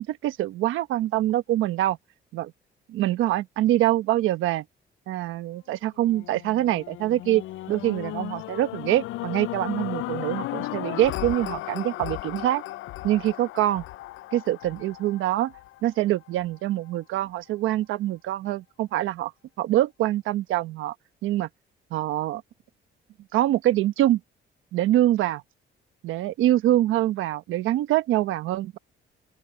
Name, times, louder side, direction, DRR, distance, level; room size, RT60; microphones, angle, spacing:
voice 1, 0.0-2.0 2.3-2.5 2.9-4.6 5.1-7.4 7.7-12.6 13.0-13.8 14.3-15.5 15.8-19.3 19.6-20.9 21.2-21.5 21.9-22.4 23.3-24.2 24.7-25.4 26.0-28.8, right 14 dB, 90° right, 1.2 m, -24 dB
sound 1, 6.0-16.3 16.9-17.0, left 17 dB, 80° left, 0.4 m, -35 dB
open air
cardioid pair, 90°, 20 cm